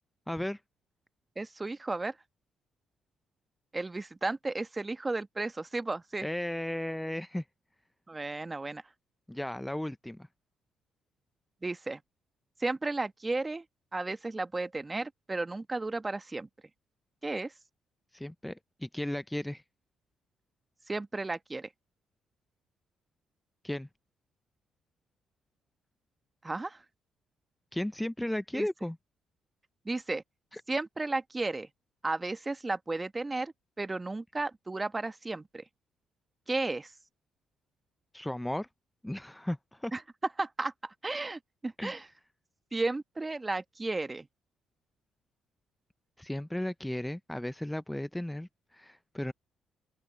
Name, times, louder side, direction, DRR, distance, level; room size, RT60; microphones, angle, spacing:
voice 1, 0.3-0.6 6.2-7.4 9.3-10.3 18.1-19.6 23.6-23.9 27.7-29.0 30.5-30.6 38.1-38.7 39.0-39.9 41.8-42.0 46.2-49.3, left 1 dB, 10° left, 0.6 m, -35 dB
voice 2, 1.4-2.1 3.7-6.3 8.1-8.8 11.6-12.0 12.6-13.6 13.9-16.5 17.2-17.5 20.9-21.7 26.4-26.8 28.5-28.7 29.9-30.2 30.7-31.7 32.0-35.6 36.5-36.9 39.9-40.0 40.4-42.1 42.7-44.3, right 2 dB, 25° right, 1.6 m, -34 dB
hypercardioid pair, 55°, 0 cm